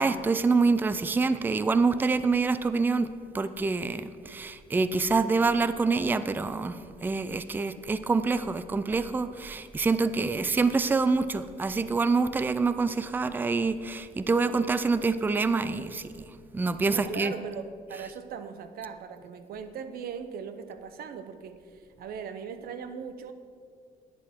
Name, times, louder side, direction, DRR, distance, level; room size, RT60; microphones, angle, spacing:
voice 1, 0.0-3.1 3.3-16.1 16.5-17.3, right 4 dB, 10° right, 13 dB, 0.3 m, -26 dB
voice 2, 16.8-17.6 17.9-23.3, right 7 dB, 65° right, 9 dB, 0.8 m, -39 dB
11.0 x 9.8 x 3.6 m, 2.2 s
cardioid pair, 110°, 17 cm